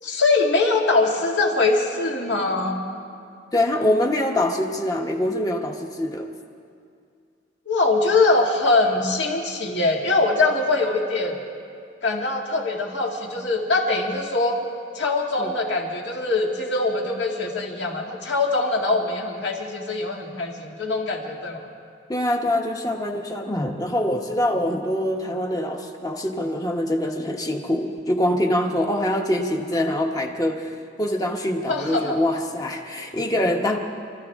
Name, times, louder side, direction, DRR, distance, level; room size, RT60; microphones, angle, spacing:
voice 1, 0.0-2.8 7.7-11.4 12.0-14.6 14.9-21.6 31.7-32.2, left 3 dB, 65° left, -1 dB, 2.3 m, -22 dB
voice 2, 3.5-6.3 15.4-15.5 22.1-33.8, left 1 dB, 20° left, 2 dB, 1.2 m, -24 dB
28.0 x 14.0 x 3.7 m, 2.3 s
head